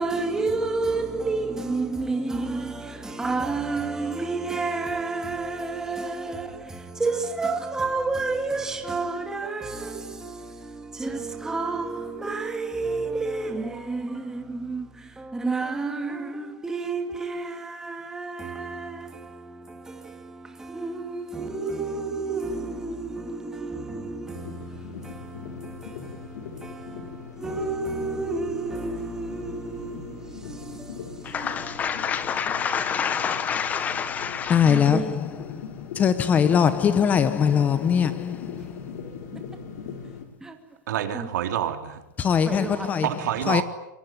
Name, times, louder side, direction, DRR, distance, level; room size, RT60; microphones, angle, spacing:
voice 1, 0.0-32.9 34.6-35.3 39.3-39.4 40.4-40.6 41.1-41.3 42.5-43.0, right 3 dB, 5° right, 2.3 m, -31 dB
sound 1, 24.3-40.3, left 7 dB, 60° left, 6.1 m, -40 dB
voice 2, 31.2-35.0 36.0-38.4 42.2-43.0 43.5-43.6, left 7 dB, 15° left, 0.9 m, -22 dB
voice 3, 40.9-42.0 43.0-43.6, right 11 dB, 70° right, 3.7 m, -27 dB
28.0 x 23.0 x 9.3 m
supercardioid pair, 170°, 10 cm